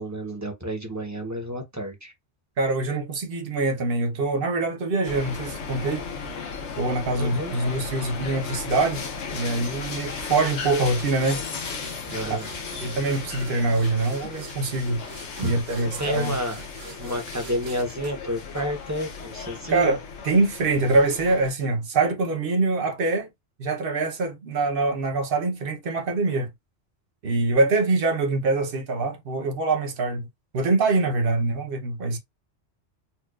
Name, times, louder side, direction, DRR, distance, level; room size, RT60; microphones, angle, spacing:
voice 1, 0.0-2.1 7.1-7.5 12.1-12.4 15.4-16.6 17.0-20.0, equal, 15° right, 0.7 m, -30 dB
voice 2, 2.6-6.1 6.8-9.0 9.3-11.4 12.3-12.4 12.8-15.0 15.4-16.4 19.7-20.0 20.2-23.3 23.6-26.5 27.2-30.3 30.5-32.2, right 3 dB, 50° right, 0.9 m, -24 dB
sound 1, 5.0-21.5, left 5 dB, 70° left, 1.1 m, -36 dB
sound 2, 10.7-19.2, right 4 dB, 75° right, 1.2 m, -46 dB
4.3 x 2.3 x 2.4 m
omnidirectional pair, 1.3 m